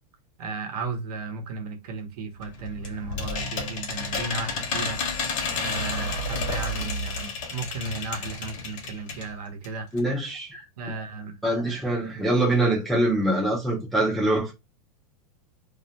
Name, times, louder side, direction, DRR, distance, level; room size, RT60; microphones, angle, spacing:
voice 1, 0.4-5.0 5.5-9.9 10.8-11.4, right 4 dB, 80° right, 0.8 m, -35 dB
sound 1, 2.4-9.3 9.6-9.7 10.0-10.1, left 3 dB, 55° left, 0.7 m, -31 dB
voice 2, 9.9-10.7 11.4-14.5, right 1 dB, ahead, 0.4 m, -24 dB
2.4 x 2.1 x 2.7 m
supercardioid pair, 175°, 20 cm